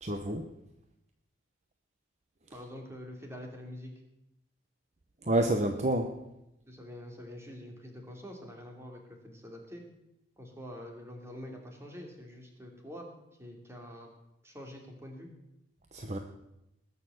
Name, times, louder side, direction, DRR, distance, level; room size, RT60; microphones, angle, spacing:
voice 1, 0.0-0.4 5.3-6.1 15.9-16.2, right 1 dB, 35° right, 5 dB, 1.0 m, -28 dB
voice 2, 2.5-3.9 6.7-9.8 10.4-13.1 13.4-14.1 14.4-15.3, left 1 dB, 15° right, 2 dB, 2.9 m, -46 dB
20.0 x 6.9 x 7.9 m, 0.88 s
head